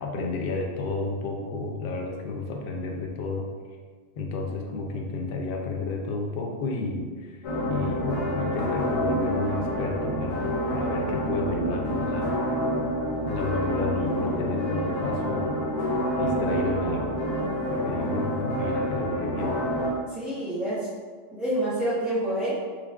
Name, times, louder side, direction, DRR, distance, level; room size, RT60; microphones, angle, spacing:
voice 1, 0.0-3.5 4.2-12.4 13.3-15.6 16.2-17.1 17.7-19.6, left 3 dB, 60° left, 1 dB, 0.6 m, -31 dB
sound 1, 7.4-19.9, equal, 90° left, 1.1 m, -28 dB
voice 2, 20.1-20.9 21.3-22.6, right 1 dB, ahead, -10 dB, 0.4 m, -28 dB
4.9 x 2.4 x 2.3 m, 1.5 s
omnidirectional pair, 1.3 m